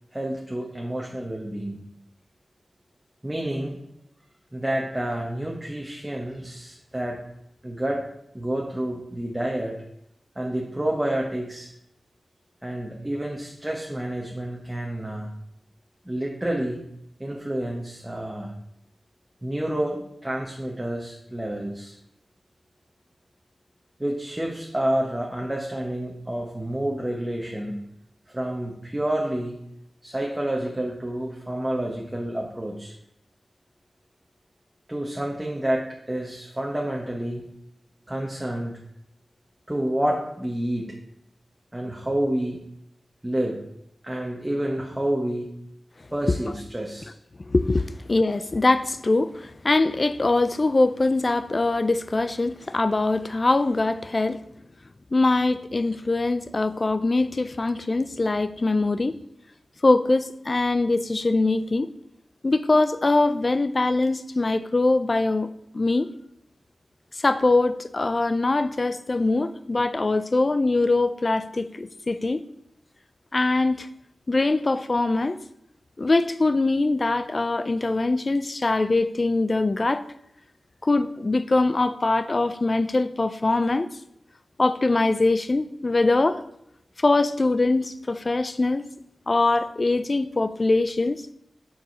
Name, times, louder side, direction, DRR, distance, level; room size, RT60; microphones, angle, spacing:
voice 1, 0.1-1.8 3.2-3.8 4.5-7.2 7.6-8.0 8.3-9.7 10.3-11.7 12.6-15.3 16.0-16.9 17.2-18.5 19.4-21.9 24.0-27.8 28.3-29.6 30.0-32.9 34.9-37.5 38.1-38.8 39.7-40.9 41.7-42.6 43.2-43.6 44.0-45.6 46.1-47.1, right 1 dB, 15° right, 1.0 m, -29 dB
voice 2, 47.4-54.4 55.1-59.2 59.8-61.9 62.4-65.5 65.7-66.1 67.1-72.4 73.3-73.9 74.3-75.4 76.0-80.0 80.8-83.9 84.6-86.4 87.0-88.8 89.3-91.2, left 2 dB, 35° left, 0.4 m, -22 dB
6.7 x 4.8 x 6.0 m
wide cardioid pair, 120°, 0 cm